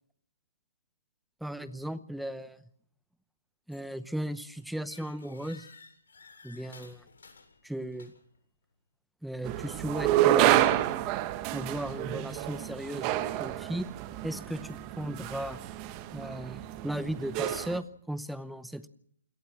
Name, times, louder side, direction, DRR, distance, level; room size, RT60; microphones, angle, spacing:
voice 1, 1.4-2.7 3.7-5.7 6.4-7.0 7.6-8.1 9.2-10.7 11.5-13.9 14.2-15.6 16.1-18.9, right 1 dB, ahead, 14 dB, 0.8 m, -36 dB
sound 1, 3.7-4.0 4.4-8.4, left 4 dB, 65° left, 7.7 m, -55 dB
sound 2, 9.4-17.8, right 13 dB, 25° right, 1.2 m, -29 dB
28.0 x 17.5 x 6.3 m, 0.66 s
hypercardioid pair, 155°, 0 cm